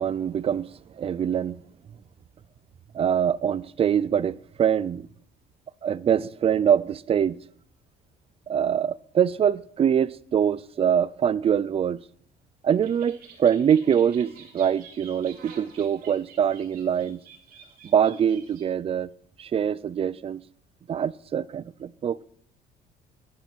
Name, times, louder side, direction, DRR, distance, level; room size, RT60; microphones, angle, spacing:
voice 1, 0.0-1.6 2.9-5.1 5.8-7.4 8.5-12.0 12.6-17.2 17.8-19.1 19.4-20.4 20.9-22.2, right 8 dB, 35° right, 0.4 m, -24 dB
sound 1, 12.7-18.6, right 6 dB, 60° right, 3.2 m, -49 dB
11.0 x 10.5 x 6.1 m
cardioid pair, 110°, 17 cm